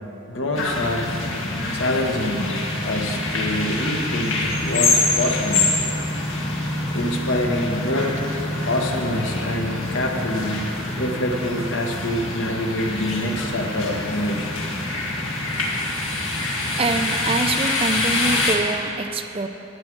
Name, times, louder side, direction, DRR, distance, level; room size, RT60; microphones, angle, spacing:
voice 1, 0.3-1.1 1.7-2.5 2.8-5.7 6.9-8.1 8.6-14.6, left 1 dB, 70° left, 2 dB, 1.3 m, -26 dB
sound 1, 0.5-18.5, left 2 dB, 85° left, 1.7 m, -25 dB
voice 2, 16.7-19.5, right 3 dB, 30° right, 8 dB, 0.5 m, -25 dB
11.5 x 9.5 x 6.1 m, 3.0 s
head